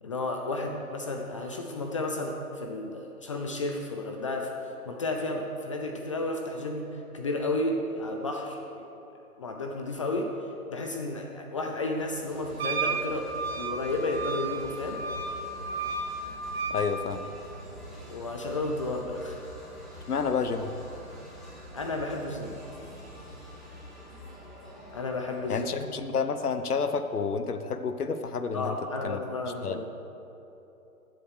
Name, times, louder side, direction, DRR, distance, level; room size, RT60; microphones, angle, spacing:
voice 1, 0.0-4.5 4.9-8.8 9.4-10.3 10.7-15.0 18.1-19.4 21.7-22.6 24.9-25.9 28.5-29.9, left 2 dB, 20° left, 2 dB, 0.5 m, -32 dB
sound 1, 11.9-26.6, equal, ahead, 2.3 m, -46 dB
Wind instrument woodwind instrument, 12.6-16.9, right 4 dB, 40° right, 1.4 m, -33 dB
voice 2, 16.7-17.3 20.1-20.7 25.5-28.7 29.0-29.2 29.6-29.8, left 5 dB, 80° left, 9 dB, 1.1 m, -29 dB
14.0 x 7.9 x 6.4 m, 3.0 s
hypercardioid pair, 140°, 45 cm